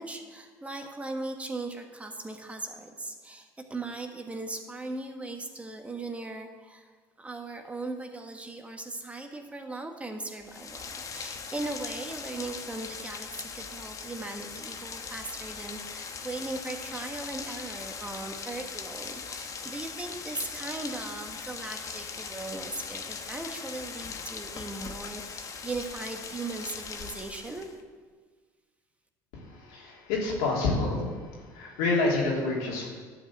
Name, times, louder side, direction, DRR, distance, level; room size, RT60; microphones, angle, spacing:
voice 1, 0.0-6.9 7.2-27.7, right 2 dB, 15° right, 4 dB, 1.4 m, -38 dB
Rain, 10.4-27.8, left 5 dB, 40° left, 1.1 m, -40 dB
voice 2, 29.5-31.1 31.5-32.9, left 3 dB, 85° left, -3 dB, 3.0 m, -28 dB
11.5 x 5.0 x 8.6 m, 1.5 s
supercardioid pair, 85°, 8 cm